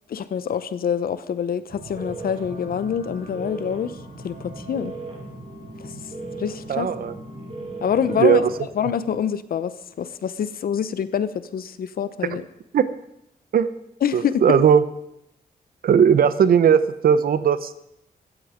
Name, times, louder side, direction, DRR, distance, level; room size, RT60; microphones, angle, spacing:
voice 1, 0.1-4.0 4.2-4.9 5.8-5.9 6.4-6.9 7.8-8.5 8.7-12.4 14.0-14.4, left 8 dB, 70° left, 14 dB, 0.9 m, -26 dB
sound 1, 1.7-8.6, right 2 dB, 40° right, 5.7 m, -37 dB
voice 2, 6.7-7.1 8.2-8.5 12.7-12.9 13.5-13.7 14.1-14.8 15.8-17.7, right 7 dB, 70° right, 14 dB, 0.9 m, -17 dB
15.5 x 14.0 x 5.1 m, 0.81 s
wide cardioid pair, 175°, 16 cm